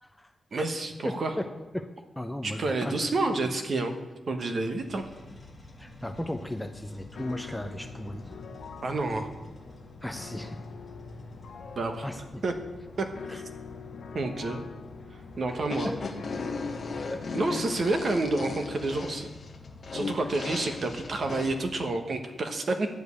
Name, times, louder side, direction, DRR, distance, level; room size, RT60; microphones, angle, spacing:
voice 1, 0.0-0.7 1.0-3.5 5.8-8.3 10.0-10.6 12.0-12.4 13.3-13.4 15.5-16.5 17.1-17.8 20.2-20.3, left 1 dB, 5° left, 6 dB, 0.5 m, -37 dB
voice 2, 0.5-1.3 2.4-3.9 4.3-5.0 8.8-9.3 11.8-12.0 12.4-12.5 13.0-13.1 14.1-14.6 15.4-15.9 17.3-19.3 19.9-22.9, right 2 dB, 40° right, 6 dB, 1.0 m, -29 dB
sound 1, 4.8-21.8, left 2 dB, 20° left, 1.7 m, -48 dB
sound 2, 7.1-19.1, left 5 dB, 75° left, 0.8 m, -45 dB
sound 3, 15.6-21.5, left 4 dB, 40° left, 1.0 m, -36 dB
10.5 x 5.2 x 8.1 m, 1.2 s
wide cardioid pair, 170°, 0 cm